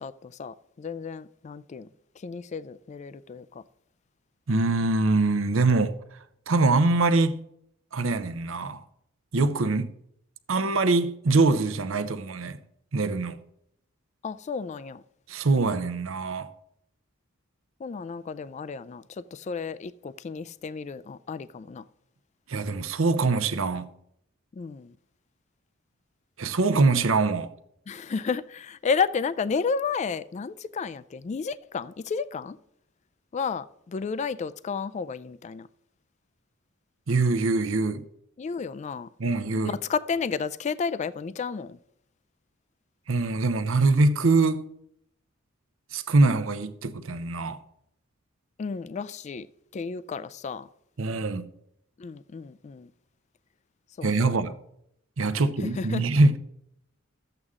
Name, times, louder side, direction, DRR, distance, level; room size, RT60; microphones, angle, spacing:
voice 1, 0.0-1.9 2.2-3.6 14.2-15.0 17.8-21.8 24.5-25.0 27.9-32.6 33.3-35.7 38.4-39.1 39.6-41.8 48.6-49.5 49.7-50.7 52.0-52.9 54.0-54.4 55.6-56.1, left 5 dB, 35° left, 0.3 m, -32 dB
voice 2, 4.5-5.9 6.5-7.4 7.9-8.8 9.3-9.9 10.5-12.6 12.9-13.4 15.3-16.5 22.5-23.9 26.4-27.5 37.1-38.0 39.2-39.7 43.1-44.6 45.9-47.6 51.0-51.5 54.0-54.5 55.2-56.4, right 3 dB, 65° right, 0.7 m, -23 dB
12.5 x 8.0 x 3.6 m
head